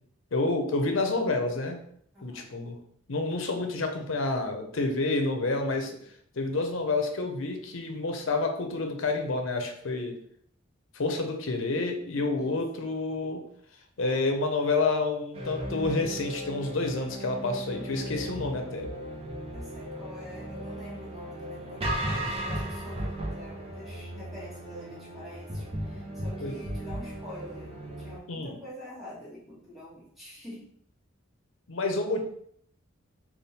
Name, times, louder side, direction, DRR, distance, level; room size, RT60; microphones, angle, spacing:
voice 1, 0.3-1.8 2.2-2.8 3.1-6.0 6.3-10.2 10.9-13.4 14.0-18.9 26.4-26.6 28.3-28.6 31.7-32.2, left 3 dB, 70° left, 5 dB, 0.7 m, -29 dB
voice 2, 2.1-2.5 12.4-12.8 19.5-30.7, equal, ahead, -9 dB, 1.4 m, -47 dB
sound 1, 15.3-28.2, right 1 dB, 30° right, 0.6 m, -36 dB
3.5 x 2.3 x 4.1 m, 0.66 s
head